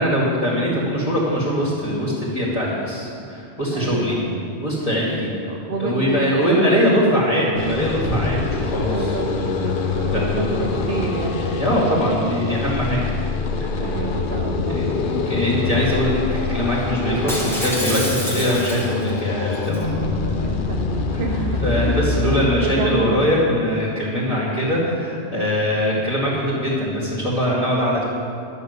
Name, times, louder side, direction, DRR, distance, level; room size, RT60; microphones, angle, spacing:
voice 1, 0.0-4.2 4.6-5.3 5.8-9.1 10.1-10.5 11.5-13.0 13.6-13.8 14.7-19.9 21.1-21.2 21.6-28.0, equal, 30° left, -8 dB, 2.5 m, -22 dB
voice 2, 3.7-4.5 5.1-6.9 8.9-12.2 13.7-15.1 19.8-23.3 24.2-24.6, right 3 dB, 60° right, 1 dB, 1.1 m, -29 dB
sound 1, 7.6-22.4, left 4 dB, 50° left, 0.9 m, -25 dB
Shatter, 17.3-19.1 19.5-19.8, equal, ahead, 1.6 m, -27 dB
11.5 x 6.9 x 8.1 m, 2.4 s
omnidirectional pair, 1.2 m